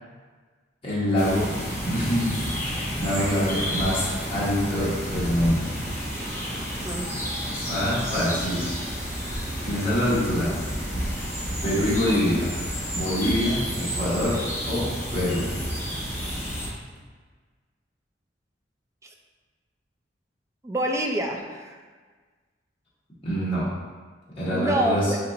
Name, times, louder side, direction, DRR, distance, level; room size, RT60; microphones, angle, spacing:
voice 1, 0.8-5.7 7.7-8.7 9.6-10.6 11.0-11.1 11.6-15.5 23.2-23.8 24.4-25.1, equal, 30° left, -9 dB, 1.2 m, -25 dB
sound 1, 1.2-16.7, equal, 15° left, 1.0 m, -30 dB
voice 2, 6.8-7.1 19.0-19.1 20.6-21.8 24.5-25.2, right 1 dB, 15° right, 2 dB, 0.4 m, -27 dB
4.3 x 2.9 x 3.9 m, 1.5 s
head